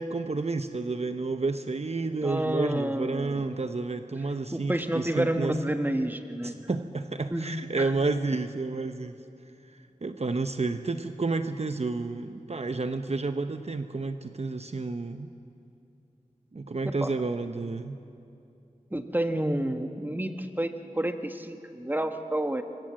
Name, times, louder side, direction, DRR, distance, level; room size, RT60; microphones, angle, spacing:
voice 1, 0.0-5.6 6.4-9.1 9.7-15.3 16.5-18.0, right 3 dB, 50° right, 8 dB, 0.8 m, -30 dB
voice 2, 2.2-3.4 4.5-6.6 7.3-7.5 7.8-7.9 16.8-17.1 18.9-22.6, right 1 dB, 15° right, 7 dB, 1.5 m, -29 dB
25.5 x 24.0 x 7.6 m, 2.7 s
wide cardioid pair, 55°, 14 cm